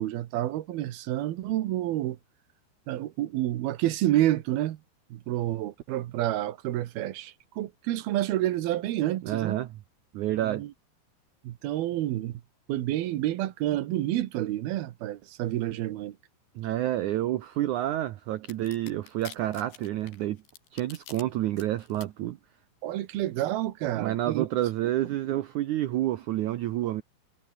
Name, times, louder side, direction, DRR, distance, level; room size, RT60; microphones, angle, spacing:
voice 1, 0.0-2.2 2.9-4.8 5.1-9.6 10.4-10.7 11.4-12.4 12.7-16.2 22.8-24.5, right 14 dB, 70° right, 3.0 m, -29 dB
voice 2, 9.2-9.7 10.1-10.6 16.5-20.4 20.7-22.4 24.0-27.0, right 14 dB, 90° right, 1.7 m, -29 dB
sound 1, 18.5-21.2 21.6-22.1, left 8 dB, 80° left, 5.5 m, -46 dB
omnidirectional pair, 4.7 m